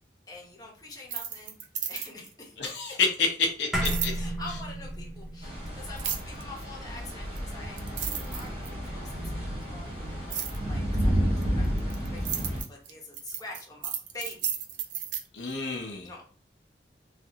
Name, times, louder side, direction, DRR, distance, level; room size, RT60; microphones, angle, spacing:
voice 1, 0.3-1.6 1.9-3.0 4.1-7.8 8.2-14.5 16.0-16.2, left 2 dB, 20° left, -1 dB, 0.9 m, -45 dB
sound 1, 1.0-2.3 3.8-4.2 6.0-6.4 7.4-7.5 7.8-8.9 10.3-10.6 11.4-15.2, right 9 dB, 85° right, 0.5 m, -33 dB
voice 2, 2.6-4.1 15.3-16.1, left 4 dB, 85° left, 2 dB, 0.7 m, -28 dB
sound 2, 3.7-8.4, right 1 dB, 5° right, 0.6 m, -34 dB
sound 3, 5.4-12.6, equal, 35° right, 1.6 m, -31 dB
3.2 x 2.6 x 2.7 m, 0.41 s
head